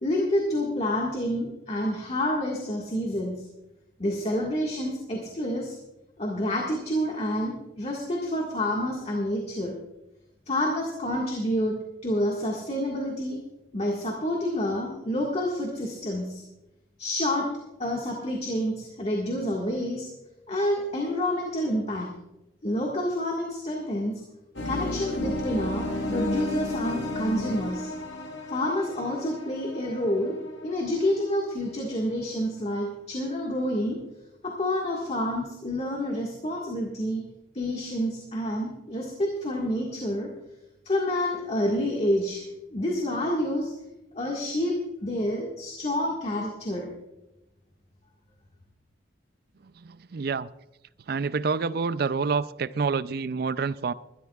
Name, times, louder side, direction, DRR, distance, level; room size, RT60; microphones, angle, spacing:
voice 1, 0.0-3.4 4.0-5.8 6.2-9.8 10.5-13.4 13.7-16.4 17.0-17.5 17.8-20.1 20.5-22.1 22.6-24.2 24.6-27.9 28.5-34.0 34.4-37.2 37.5-40.3 40.8-42.4 42.7-43.7 44.1-44.8 45.0-46.9, left 1 dB, 35° left, 1.7 m, -28 dB
sound 1, 24.6-31.4, left 1 dB, 80° left, 1.7 m, -33 dB
voice 2, 49.8-50.5 51.1-53.9, right 5 dB, 55° right, 0.4 m, -28 dB
21.5 x 12.5 x 2.4 m
head